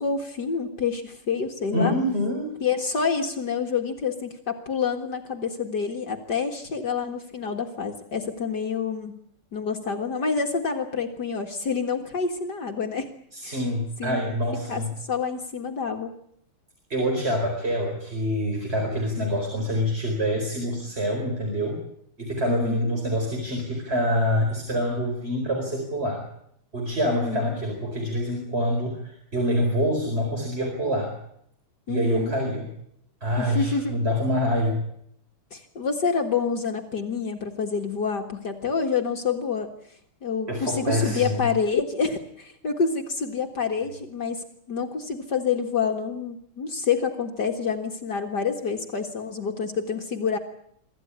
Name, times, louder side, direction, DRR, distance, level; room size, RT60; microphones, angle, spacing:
voice 1, 0.0-1.9 2.6-9.2 9.5-13.1 13.4-13.6 14.0-14.2 14.7-14.8 15.1-16.1 22.5-22.9 27.1-27.5 31.9-32.4 33.4-34.1 35.5-39.7 40.2-50.4, left 5 dB, 50° left, 3 dB, 2.2 m, -27 dB
voice 2, 1.7-2.5 13.3-14.9 16.9-21.8 22.2-26.2 26.7-31.2 31.9-32.7 33.2-34.8 40.5-41.4, equal, 25° right, 1 dB, 4.8 m, -26 dB
25.0 x 14.0 x 9.9 m, 0.71 s
omnidirectional pair, 2.4 m